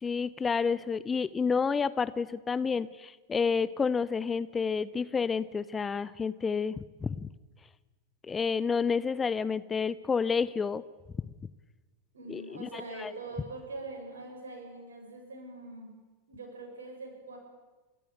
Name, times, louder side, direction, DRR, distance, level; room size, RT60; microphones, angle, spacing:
voice 1, 0.0-7.3 8.2-10.8 12.3-13.1, left 5 dB, 15° left, 17 dB, 0.7 m, -30 dB
voice 2, 12.1-15.9 16.3-17.4, right 2 dB, 70° right, 3 dB, 6.9 m, -43 dB
29.0 x 14.0 x 9.0 m, 1.3 s
figure-of-eight pair, 90°, 0 cm